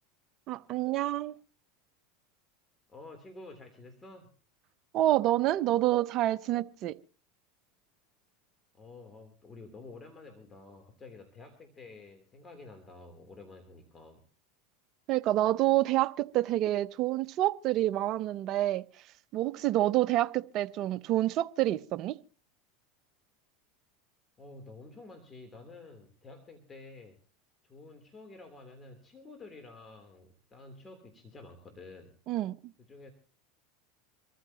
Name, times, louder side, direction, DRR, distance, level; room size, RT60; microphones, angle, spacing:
voice 1, 0.5-1.3 4.9-7.0 15.1-18.8 19.3-22.2 32.3-32.7, right 15 dB, 50° right, 0.7 m, -28 dB
voice 2, 2.9-4.3 8.7-14.2 24.4-27.2 27.6-32.2 32.8-33.1, left 3 dB, 20° left, 3.3 m, -50 dB
26.0 x 14.0 x 2.9 m
hypercardioid pair, 100°, 0 cm